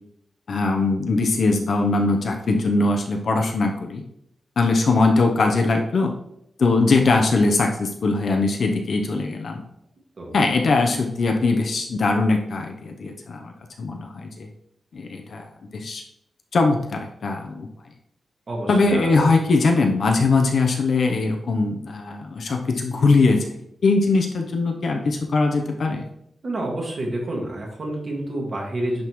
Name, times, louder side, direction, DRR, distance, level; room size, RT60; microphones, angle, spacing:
voice 1, 0.5-4.0 4.6-6.1 6.6-9.6 10.3-13.5 13.8-14.5 14.9-15.4 15.7-16.0 16.5-17.7 18.7-23.4 23.8-26.1, left 3 dB, 60° left, 3 dB, 0.8 m, -21 dB
voice 2, 18.5-19.3 20.1-20.2 26.4-29.1, right 1 dB, 40° right, -2 dB, 2.0 m, -29 dB
10.5 x 3.7 x 3.1 m, 0.75 s
wide cardioid pair, 145°, 0 cm